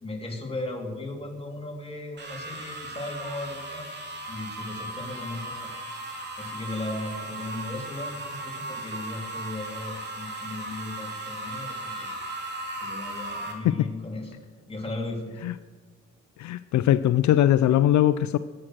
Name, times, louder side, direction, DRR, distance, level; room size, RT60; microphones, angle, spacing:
voice 1, 0.0-3.9 4.3-5.7 6.4-12.1 12.8-14.4 14.7-15.4, left 2 dB, 20° left, 1 dB, 3.5 m, -36 dB
sound 1, 2.2-13.5, right 2 dB, 35° right, 3.4 m, -37 dB
voice 2, 16.4-18.4, left 12 dB, 70° left, 14 dB, 0.5 m, -20 dB
22.0 x 8.8 x 6.3 m, 1.5 s
cardioid pair, 90°, 30 cm